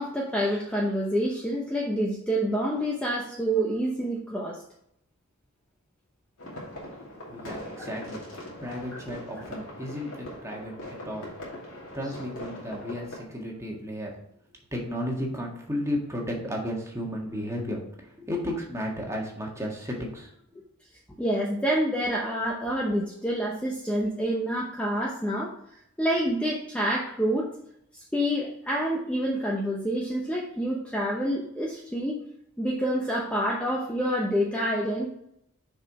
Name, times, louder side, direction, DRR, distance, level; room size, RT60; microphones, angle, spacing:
voice 1, 0.0-4.6 21.2-25.5 26.0-27.5 28.1-32.2 32.6-35.1, equal, 5° left, -3 dB, 0.9 m, -27 dB
sound 1, 6.4-13.2, left 1 dB, 65° left, 2.6 m, -41 dB
voice 2, 7.3-8.2 8.6-11.3 11.9-14.1 14.7-20.3, equal, 15° right, -1 dB, 1.7 m, -33 dB
6.7 x 4.9 x 4.7 m, 0.73 s
head